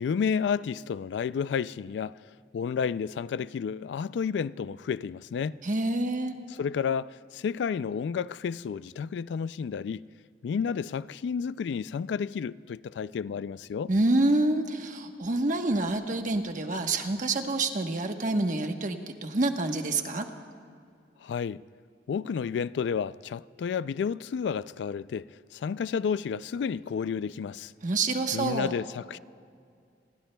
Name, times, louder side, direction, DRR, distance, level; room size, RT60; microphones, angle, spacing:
voice 1, 0.0-2.2 2.5-5.6 6.6-10.1 10.4-13.9 21.2-21.6 22.1-25.3 25.5-27.7 28.3-29.2, left 6 dB, 80° left, 0.3 m, -31 dB
voice 2, 5.6-6.3 13.9-20.3 27.8-28.7, right 2 dB, 50° right, 1.1 m, -27 dB
29.0 x 21.5 x 2.3 m
head